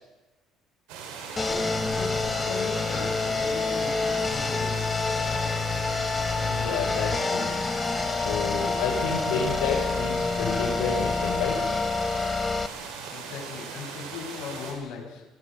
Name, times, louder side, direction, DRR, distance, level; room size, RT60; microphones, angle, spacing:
sound 1, 0.9-14.7, right 5 dB, 90° right, 5.0 m, -39 dB
sound 2, 1.4-12.7, left 4 dB, 20° left, 0.9 m, -27 dB
voice 1, 1.5-5.2 13.1-15.2, left 5 dB, 60° left, 1 dB, 5.7 m, -39 dB
voice 2, 6.4-7.5 8.1-11.6, left 6 dB, 85° left, -1 dB, 4.9 m, -30 dB
20.5 x 15.0 x 8.9 m, 1.1 s
cardioid pair, 130°, 0 cm